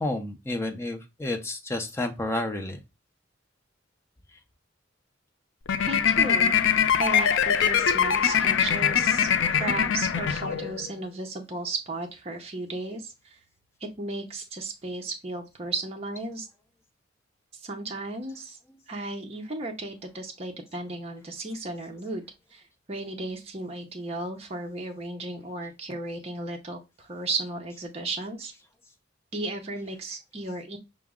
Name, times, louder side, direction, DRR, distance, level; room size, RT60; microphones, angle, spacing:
voice 1, 0.0-2.8, left 2 dB, 15° left, 5 dB, 0.5 m, -30 dB
sound 1, 5.7-10.9, left 7 dB, 75° left, 0.4 m, -23 dB
voice 2, 5.9-6.6 6.9-13.4 14.0-16.5 17.6-18.6 18.9-22.3 22.5-22.6 22.9-28.5 29.3-30.8, right 2 dB, 30° right, 2 dB, 0.6 m, -34 dB
5.7 x 2.0 x 3.5 m, 0.25 s
head